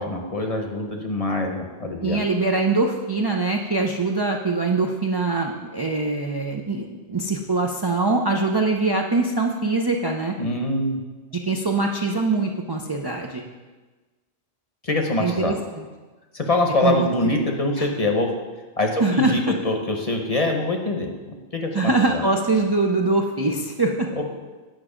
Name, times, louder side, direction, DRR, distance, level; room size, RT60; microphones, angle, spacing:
voice 1, 0.0-2.2 10.4-11.0 14.8-15.5 16.3-18.3 18.8-21.1 21.5-22.2 24.2-24.3, left 2 dB, 35° left, 3 dB, 0.9 m, -24 dB
voice 2, 2.0-10.3 11.3-13.4 15.2-15.8 16.8-17.1 17.8-17.9 19.0-19.6 21.7-24.1, right 3 dB, 35° right, 1 dB, 0.4 m, -23 dB
9.2 x 6.0 x 5.0 m, 1.3 s
omnidirectional pair, 1.2 m